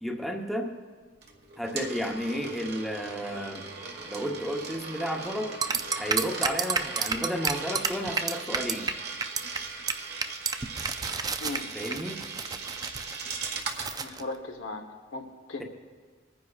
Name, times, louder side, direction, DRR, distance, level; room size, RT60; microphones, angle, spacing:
voice 1, 0.0-0.8 1.6-3.7 4.1-5.5 6.0-8.9 11.7-12.3, equal, ahead, 0 dB, 0.8 m, -32 dB
Coin (dropping), 1.2-14.0, right 4 dB, 55° right, 1.3 m, -39 dB
sound 1, 5.6-8.9 9.2-9.6 9.9-10.0 10.2-14.2, right 5 dB, 20° right, 0.3 m, -30 dB
voice 2, 11.4-11.7 14.0-14.8 15.1-15.6, left 2 dB, 90° left, 3 dB, 1.1 m, -37 dB
25.5 x 9.7 x 2.4 m, 1.5 s
head